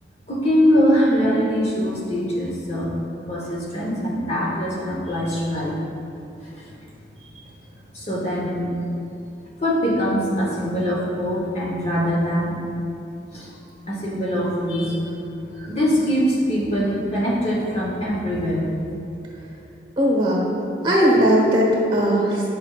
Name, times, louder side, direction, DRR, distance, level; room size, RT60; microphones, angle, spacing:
voice 1, 0.3-2.9 3.3-5.7 6.4-6.7 7.2-7.4 7.9-8.7 9.6-12.5 13.3-13.5 13.9-15.0 15.5-18.7, equal, 35° left, -5 dB, 1.1 m, -23 dB
voice 2, 20.0-20.4 20.8-22.4, equal, 25° right, -3 dB, 1.2 m, -18 dB
9.4 x 5.1 x 2.4 m, 2.8 s
head